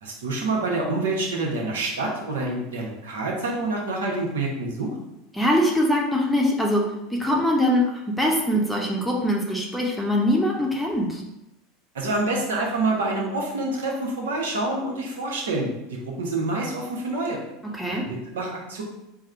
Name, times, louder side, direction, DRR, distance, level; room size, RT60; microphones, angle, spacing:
voice 1, 0.0-4.9 11.9-17.4 17.9-18.8, right 2 dB, 75° right, -1 dB, 0.9 m, -27 dB
voice 2, 5.3-6.8 7.1-11.2 17.7-18.0, left 1 dB, 5° left, -2 dB, 0.7 m, -22 dB
3.5 x 2.1 x 4.3 m, 0.91 s
hypercardioid pair, 85°, 0 cm